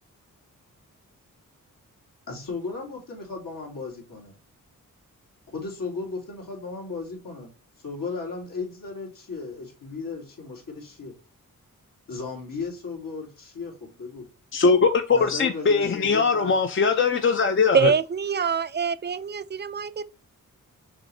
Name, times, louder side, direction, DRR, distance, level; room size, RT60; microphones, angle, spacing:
voice 1, 2.3-4.3 5.5-7.5 7.8-11.1 12.1-14.3 15.1-16.6, left 4 dB, 80° left, 2.5 m, -35 dB
voice 2, 14.5-17.9, left 5 dB, 40° left, 0.6 m, -21 dB
voice 3, 17.7-20.1, right 6 dB, 35° right, 0.4 m, -24 dB
6.0 x 3.1 x 2.7 m
cardioid pair, 75°, 33 cm